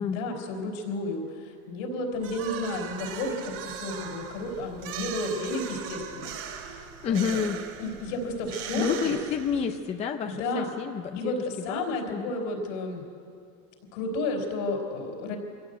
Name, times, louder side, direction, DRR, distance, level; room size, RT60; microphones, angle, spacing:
voice 1, 0.0-7.4 7.8-9.2 10.3-10.7 11.1-13.0 13.9-15.4, left 2 dB, 65° left, 4 dB, 4.4 m, -32 dB
sound 1, 2.2-9.9, right 8 dB, 45° right, 2.5 m, -39 dB
voice 2, 7.0-7.6 8.7-11.4 11.7-11.8 12.1-12.3, left 7 dB, 15° left, 6 dB, 0.5 m, -29 dB
23.5 x 16.0 x 8.1 m, 2.4 s
cardioid pair, 175°, 41 cm